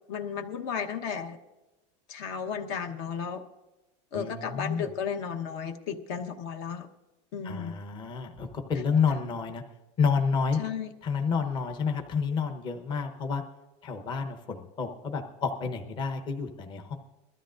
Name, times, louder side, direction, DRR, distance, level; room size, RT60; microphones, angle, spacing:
voice 1, 0.1-1.4 2.1-3.4 4.1-6.9 7.3-7.7 10.6-10.9, left 7 dB, 60° left, 6 dB, 1.1 m, -34 dB
voice 2, 4.1-4.9 7.4-9.6 10.0-10.6 11.0-13.4 13.8-16.9, left 5 dB, 30° left, 4 dB, 1.0 m, -29 dB
22.0 x 13.0 x 2.5 m, 1.0 s
supercardioid pair, 155°, 16 cm